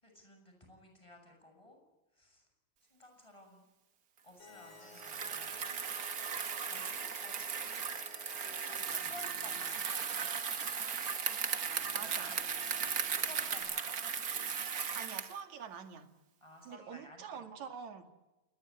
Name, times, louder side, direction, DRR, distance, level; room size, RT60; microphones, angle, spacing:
voice 1, 0.0-1.8 2.2-2.4 2.9-3.6 4.2-5.6 6.6-7.6 8.6-10.2 11.8-12.2 13.2-14.0 16.4-17.4, left 1 dB, 10° left, 3 dB, 7.7 m, -54 dB
sound 1, 4.4-13.6, left 4 dB, 70° left, 7.7 m, -54 dB
Bicycle, 4.9-15.4, right 7 dB, 85° right, 0.8 m, -37 dB
voice 2, 11.9-12.4 14.9-16.1 16.6-18.1, right 7 dB, 60° right, 7 dB, 3.4 m, -46 dB
28.5 x 20.0 x 9.9 m, 1.0 s
omnidirectional pair, 3.9 m